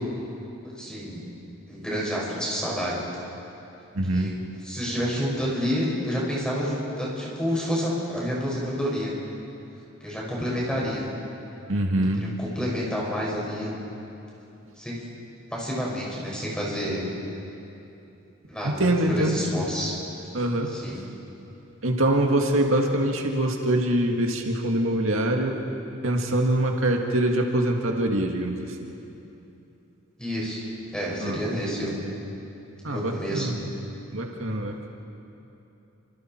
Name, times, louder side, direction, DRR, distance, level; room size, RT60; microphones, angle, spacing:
voice 1, 0.7-1.2 1.7-3.0 4.1-4.3 4.6-9.1 10.0-11.0 12.1-13.7 14.8-14.9 15.5-17.0 18.5-19.9 20.7-21.0 30.2-30.6 30.9-32.0 32.9-33.5, equal, 5° left, -5 dB, 6.2 m, -29 dB
voice 2, 4.0-4.3 11.7-12.2 18.8-19.4 20.3-20.7 21.8-25.6 26.0-28.9 31.2-31.4 32.8-33.5 34.1-34.9, right 1 dB, 75° right, 2 dB, 2.0 m, -24 dB
29.5 x 26.5 x 4.6 m, 2.9 s
head